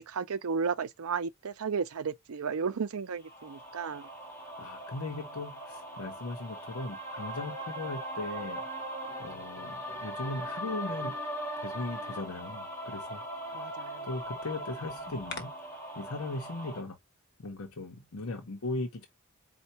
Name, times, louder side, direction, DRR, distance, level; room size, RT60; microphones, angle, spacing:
voice 1, 0.0-4.1 13.5-14.1, right 5 dB, 80° right, 0.5 m, -34 dB
sound 1, 3.2-16.8, right 1 dB, 10° left, 1.8 m, -40 dB
voice 2, 4.6-8.6 9.2-11.1 11.6-13.2 13.5-13.6 14.0-15.5 16.0-17.0 17.4-19.1, left 2 dB, 75° left, 0.9 m, -38 dB
sound 2, 9.1-11.4 14.2-15.4, left 3 dB, 50° left, 1.1 m, -48 dB
4.5 x 2.4 x 4.1 m
head